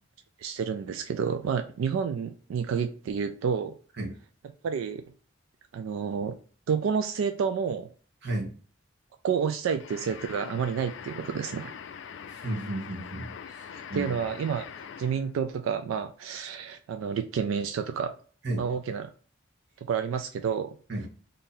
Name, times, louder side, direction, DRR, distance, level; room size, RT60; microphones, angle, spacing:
voice 1, 0.4-3.7 4.6-5.0 5.7-6.4 6.7-7.9 9.2-11.7 13.7-18.1 18.6-19.1 19.8-20.8, right 6 dB, 90° right, 0.3 m, -30 dB
sound 1, 9.8-15.3, left 7 dB, 65° left, 0.3 m, -43 dB
voice 2, 12.3-14.2 18.4-18.6 20.9-21.0, right 1 dB, 60° right, 1.0 m, -33 dB
2.7 x 2.6 x 3.8 m
head